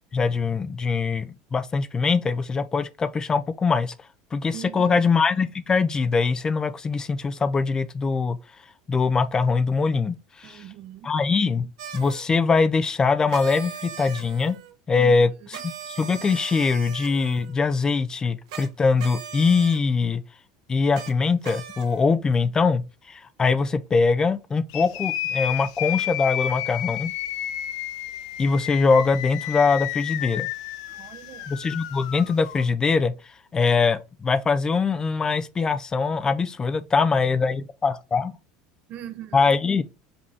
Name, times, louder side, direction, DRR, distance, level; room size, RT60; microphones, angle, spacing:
voice 1, 0.1-3.9 4.3-8.4 8.9-10.6 11.0-11.7 11.9-14.6 14.9-20.2 20.7-27.1 28.4-30.5 31.5-33.1 33.5-38.3 39.3-39.8, left 4 dB, 20° left, 0.4 m, -22 dB
voice 2, 4.5-5.0 10.4-11.1 14.9-15.1 30.9-31.5 38.9-39.4, right 11 dB, 45° right, 0.7 m, -40 dB
sound 1, 11.8-12.2 13.3-14.7 15.5-17.5 18.5-18.7 19.0-19.8 20.9-21.1 21.4-22.1, right 7 dB, 90° right, 1.0 m, -38 dB
sound 2, 24.7-32.6, left 13 dB, 80° left, 0.8 m, -31 dB
5.2 x 2.7 x 3.4 m
supercardioid pair, 125°, 3 cm